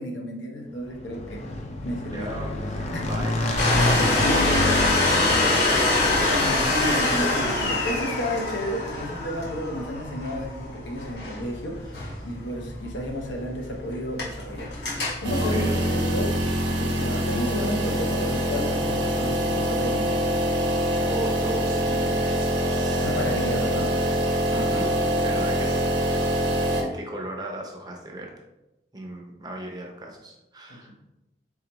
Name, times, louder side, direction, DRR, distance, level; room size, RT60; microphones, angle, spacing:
voice 1, 0.0-1.5 1.8-2.3 2.9-3.1 4.0-4.4 6.3-14.7 15.2-16.3 16.7-20.2 23.0-24.0 30.7-30.9, equal, 90° left, 2 dB, 0.8 m, -32 dB
Motorcycle / Engine, 0.9-8.2, left 1 dB, 35° left, 0.5 m, -29 dB
voice 2, 2.1-2.6 3.0-7.0 15.4-16.0 20.9-23.1 24.5-24.9 25.2-25.9 26.8-28.3 28.9-30.9, right 1 dB, 20° right, 1 dB, 0.6 m, -36 dB
Domestic sounds home sounds, 3.6-16.7, left 2 dB, 75° left, 1.5 m, -26 dB
sound 1, 15.2-26.8, equal, 70° right, 0.9 m, -24 dB
4.2 x 3.8 x 2.9 m, 0.95 s
head